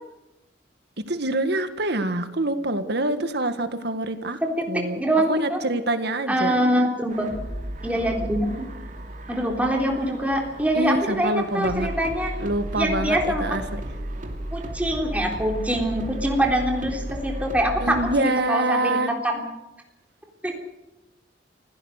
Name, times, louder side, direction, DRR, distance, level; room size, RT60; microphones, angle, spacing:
voice 1, 1.1-4.4 4.7-5.0 5.3-6.5 10.7-11.9 12.4-13.8 17.8-19.1, right 2 dB, 60° right, 9 dB, 1.8 m, -25 dB
voice 2, 4.4-5.6 6.3-7.3 7.8-8.6 9.3-12.3 12.7-13.6 14.5-19.4 20.4-20.6, equal, 10° right, 1 dB, 3.6 m, -24 dB
sound 1, 7.1-18.1, right 1 dB, 45° right, 2.6 m, -34 dB
28.0 x 16.5 x 6.6 m, 1.0 s
head